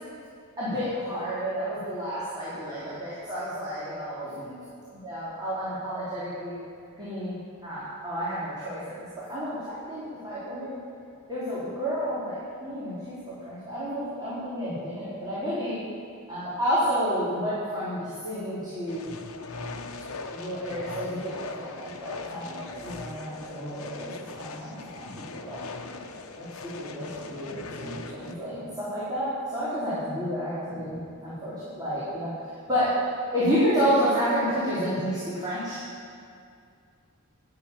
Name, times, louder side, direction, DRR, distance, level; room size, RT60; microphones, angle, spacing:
voice 1, 0.6-4.6 5.0-6.5 7.0-8.9 9.3-10.8 11.3-13.2 13.5-15.8 16.3-19.1 20.3-25.6 26.4-31.0 31.2-32.3 32.7-32.9 33.3-35.8, equal, 20° right, -12 dB, 4.2 m, -30 dB
sound 1, 18.9-28.3, left 3 dB, 70° left, 1.0 m, -40 dB
13.0 x 8.9 x 8.8 m, 2.3 s
head